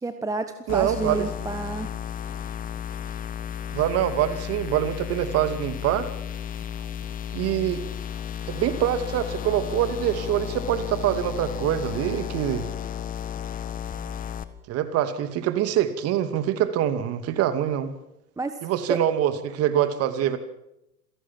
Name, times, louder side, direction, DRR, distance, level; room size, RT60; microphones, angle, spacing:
voice 1, 0.0-1.9 18.4-18.6 18.9-19.0, right 3 dB, 5° right, 9 dB, 1.2 m, -29 dB
sound 1, 0.7-14.4, left 10 dB, 15° left, 1.6 m, -33 dB
voice 2, 0.7-1.2 3.7-6.1 7.3-7.8 8.5-12.7 14.7-17.9 18.6-20.4, right 11 dB, 30° right, 11 dB, 2.4 m, -25 dB
27.5 x 17.5 x 7.4 m, 0.87 s
figure-of-eight pair, 105°, 48 cm